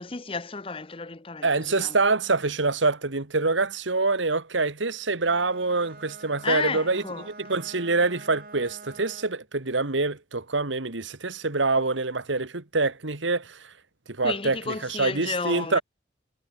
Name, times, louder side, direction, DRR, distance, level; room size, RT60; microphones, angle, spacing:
voice 1, 0.0-2.0 6.4-7.3 14.2-15.8, left 4 dB, 30° left, 0.8 m, -32 dB
voice 2, 1.4-7.0 7.4-13.6 14.1-15.8, right 3 dB, 85° right, 1.8 m, -25 dB
Bowed string instrument, 5.2-9.5, right 3 dB, 50° right, 2.9 m, -46 dB
head